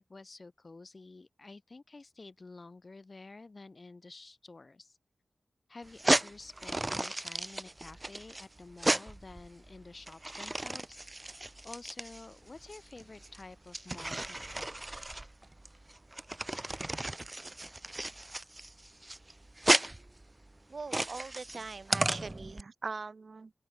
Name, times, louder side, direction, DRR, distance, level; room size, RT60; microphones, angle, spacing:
voice 1, 0.0-5.0 5.7-14.5, left 3 dB, 45° left, 1.4 m, -50 dB
sound 1, 5.9-22.6, right 2 dB, 25° right, 0.5 m, -34 dB
voice 2, 20.7-23.5, right 4 dB, 60° right, 0.9 m, -41 dB
open air
wide cardioid pair, 90°, 0 cm